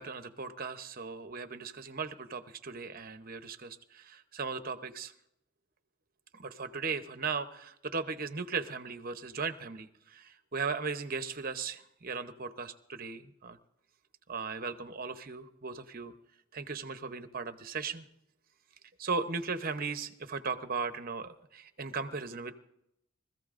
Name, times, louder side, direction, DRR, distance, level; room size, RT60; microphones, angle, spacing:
voice 1, 0.0-5.1 6.3-13.6 14.3-16.1 16.5-18.0 19.0-22.5, right 4 dB, 45° right, 9 dB, 0.8 m, -37 dB
24.0 x 15.0 x 2.5 m, 0.80 s
head